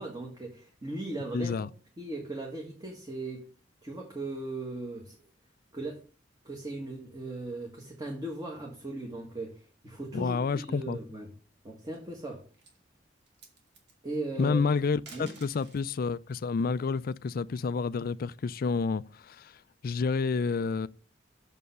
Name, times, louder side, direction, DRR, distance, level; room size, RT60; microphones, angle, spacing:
voice 1, 0.0-1.5 2.0-3.5 3.8-5.2 5.7-6.0 6.4-11.3 11.6-12.4 14.0-14.6 15.1-15.3, right 2 dB, 20° right, 1.7 m, -38 dB
voice 2, 1.3-1.7 10.1-11.0 14.4-19.6 19.8-20.9, left 4 dB, 50° left, 0.4 m, -29 dB
sound 1, 11.7-12.2 12.5-12.8 13.2-13.9 14.9-15.9 17.4-18.6, right 3 dB, 65° right, 2.3 m, -53 dB
6.9 x 5.4 x 6.5 m
head